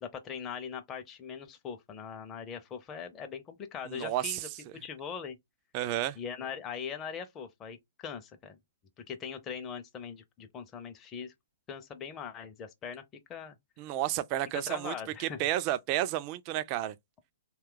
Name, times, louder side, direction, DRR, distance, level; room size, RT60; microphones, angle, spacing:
voice 1, 0.0-4.4 4.8-5.4 6.2-8.6 9.1-11.3 11.7-13.0 13.3-13.6 14.7-15.4, left 7 dB, 25° left, 0.5 m, -41 dB
voice 2, 3.9-4.4 5.7-6.2 13.8-14.9 15.2-16.9, right 13 dB, 35° right, 0.4 m, -31 dB
2.7 x 2.3 x 3.7 m
hypercardioid pair, 125°, 0 cm